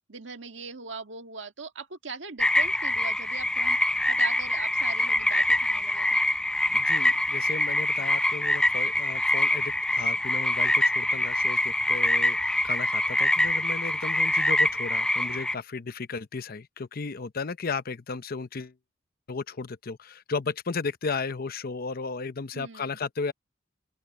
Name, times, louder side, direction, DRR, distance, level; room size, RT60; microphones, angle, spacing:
voice 1, 0.1-3.8 4.1-6.2 22.5-23.0, right 4 dB, 70° right, 1.8 m, -40 dB
sound 1, 2.4-15.5, left 1 dB, 5° left, 0.4 m, -25 dB
voice 2, 6.7-18.7 19.3-23.3, left 4 dB, 50° left, 0.7 m, -34 dB
open air
head